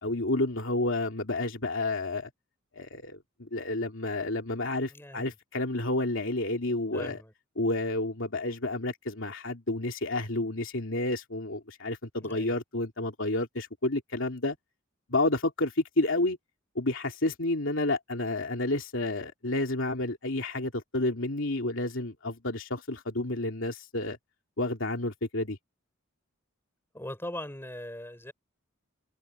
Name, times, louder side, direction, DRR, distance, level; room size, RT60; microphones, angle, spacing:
voice 1, 0.0-2.3 2.7-7.2 7.6-14.6 15.1-16.4 16.7-24.2 24.6-25.6, left 2 dB, 65° left, 3.0 m, -30 dB
voice 2, 4.8-5.3 6.9-7.3 12.2-12.6 26.9-28.3, left 1 dB, 10° left, 5.2 m, -40 dB
head